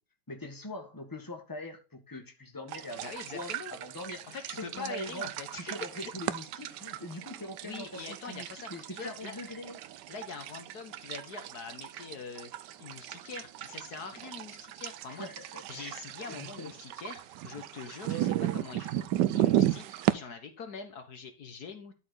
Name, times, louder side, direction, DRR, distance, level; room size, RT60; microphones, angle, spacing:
voice 1, 0.3-9.8 15.1-15.5 15.7-16.0 16.3-16.7, left 1 dB, 10° left, 1.8 m, -43 dB
sound 1, 2.7-20.1, right 13 dB, 85° right, 1.3 m, -35 dB
voice 2, 3.0-3.7 4.3-6.1 6.7-6.8 7.6-9.4 10.1-12.5 12.8-15.3 15.7-21.9, left 5 dB, 65° left, 1.8 m, -44 dB
12.0 x 4.7 x 4.0 m
omnidirectional pair, 1.8 m